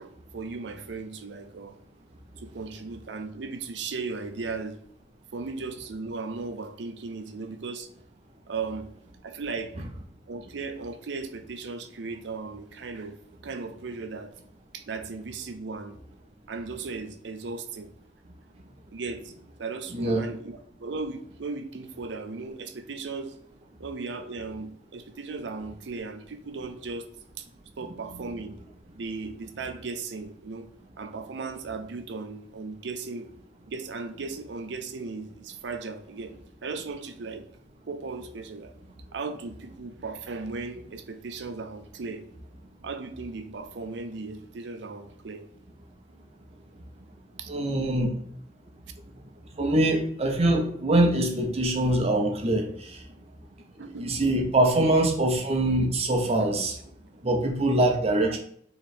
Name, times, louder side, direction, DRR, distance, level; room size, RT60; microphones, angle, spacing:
voice 1, 0.0-1.8 2.4-4.8 5.3-7.9 8.5-8.9 9.2-9.7 10.3-13.2 13.4-14.3 14.7-16.0 16.5-17.9 18.9-19.3 19.6-23.4 23.8-27.1 27.4-27.5 27.8-28.6 29.0-30.7 31.0-33.3 33.7-36.3 36.6-37.5 37.9-38.7 39.1-42.3 42.8-45.5 47.4-47.5 53.8-54.1 54.8-54.9, right 4 dB, 75° right, 8 dB, 0.5 m, -36 dB
voice 2, 19.9-20.2 28.1-28.2 47.5-48.2 49.6-53.1 54.0-56.8 57.2-58.4, right 1 dB, 35° right, 2 dB, 0.7 m, -24 dB
3.2 x 3.0 x 4.2 m, 0.64 s
head